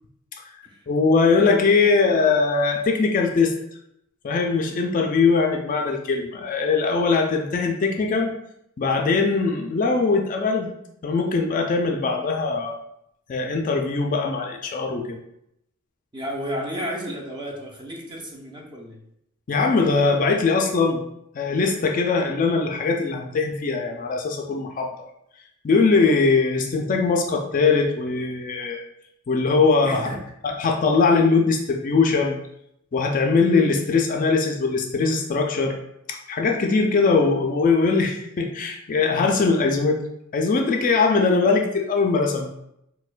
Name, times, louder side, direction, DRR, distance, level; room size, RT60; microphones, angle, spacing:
voice 1, 0.9-3.5 4.2-8.3 8.8-10.7 11.0-12.8 13.3-15.2 19.5-21.0 21.3-24.9 25.6-28.8 29.3-30.1 30.4-32.4 32.9-35.8 36.1-40.0 40.3-42.5, left 4 dB, 40° left, 2 dB, 0.3 m, -21 dB
voice 2, 16.1-19.0 29.8-30.2, equal, 20° right, 0 dB, 0.5 m, -32 dB
4.2 x 2.2 x 2.4 m, 0.79 s
head